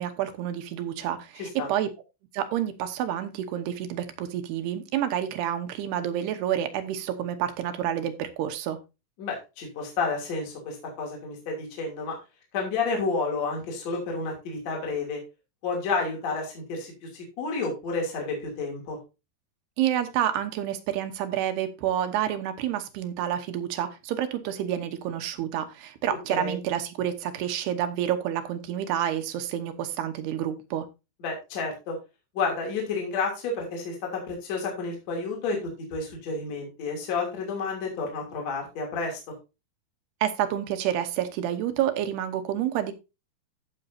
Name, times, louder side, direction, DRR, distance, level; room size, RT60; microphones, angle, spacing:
voice 1, 0.0-1.9 2.3-8.8 19.8-30.9 40.2-42.9, right 10 dB, 90° right, 3.0 m, -29 dB
voice 2, 9.2-12.2 12.5-15.2 15.6-19.0 26.3-26.6 31.2-32.0 32.3-39.2, left 4 dB, 45° left, 3.8 m, -30 dB
14.0 x 6.6 x 2.7 m
omnidirectional pair, 4.6 m